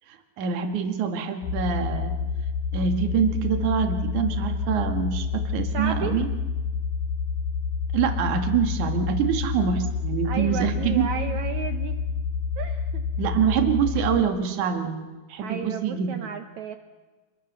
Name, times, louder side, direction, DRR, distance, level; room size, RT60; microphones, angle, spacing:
voice 1, 0.4-2.2 2.7-6.3 7.9-11.1 13.2-16.3, right 7 dB, 55° right, 6 dB, 3.2 m, -25 dB
sound 1, 1.4-14.2, left 5 dB, 70° left, 2.4 m, -28 dB
voice 2, 5.7-6.1 10.2-12.0 12.6-13.0 15.4-16.8, right 8 dB, 75° right, 8 dB, 1.7 m, -33 dB
27.0 x 22.0 x 7.0 m, 1.3 s
omnidirectional pair, 4.5 m